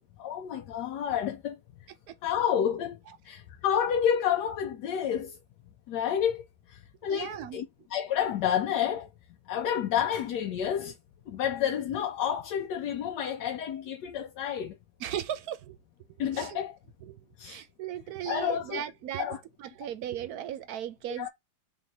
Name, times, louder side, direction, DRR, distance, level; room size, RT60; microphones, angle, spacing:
voice 1, 0.2-1.6 2.2-3.0 3.2-5.4 5.9-9.1 9.5-11.0 11.3-14.8 16.2-16.8 17.4-17.6 18.3-18.8 19.2-19.4 21.2-21.3, left 9 dB, 80° left, 1.2 m, -30 dB
voice 2, 7.1-7.6 15.0-15.8 16.3-16.6 17.1-17.2 17.4-19.3 19.6-21.3, right 11 dB, 70° right, 1.1 m, -36 dB
3.8 x 3.3 x 2.7 m
omnidirectional pair, 1.8 m